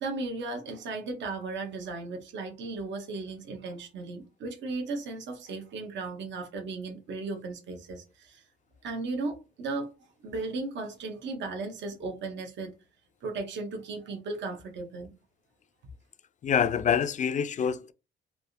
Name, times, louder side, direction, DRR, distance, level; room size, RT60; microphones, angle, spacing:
voice 1, 0.0-8.4 8.8-9.9 10.2-12.7 13.2-15.1, right 3 dB, 65° right, 0.9 m, -36 dB
voice 2, 16.4-17.9, left 7 dB, 40° left, 0.4 m, -26 dB
3.3 x 2.4 x 2.6 m
cardioid pair, 90°, 20 cm